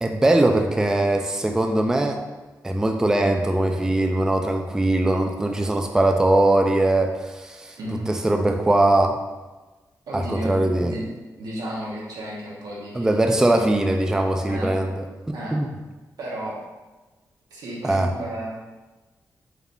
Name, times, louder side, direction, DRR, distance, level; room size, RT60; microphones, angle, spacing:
voice 1, 0.0-2.2 2.6-7.8 8.1-9.2 10.1-10.9 12.9-15.0 15.5-15.7 17.8-18.1, right 1 dB, 10° right, 4 dB, 0.3 m, -21 dB
voice 2, 7.8-8.1 10.1-11.0 11.4-13.7 14.5-14.8 15.3-15.6 16.2-16.6 17.5-18.6, right 1 dB, 85° right, -4 dB, 1.1 m, -33 dB
4.8 x 3.4 x 2.6 m, 1.2 s
wide cardioid pair, 110°, 7 cm